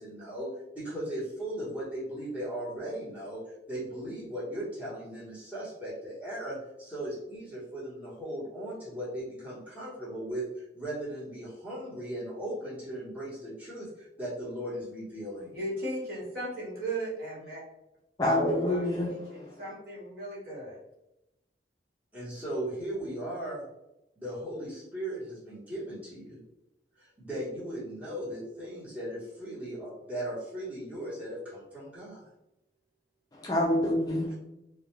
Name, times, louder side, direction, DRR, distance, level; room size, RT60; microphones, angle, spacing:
voice 1, 0.0-3.4 3.7-15.6 22.1-23.6 24.2-26.4 27.0-32.2, right 1 dB, 10° right, -10 dB, 0.9 m, -37 dB
voice 2, 15.5-17.6 18.5-20.8, right 1 dB, 55° right, -7 dB, 1.2 m, -37 dB
voice 3, 18.2-19.7 33.3-34.3, left 1 dB, 20° left, -3 dB, 0.3 m, -27 dB
2.2 x 2.2 x 3.0 m, 0.90 s
head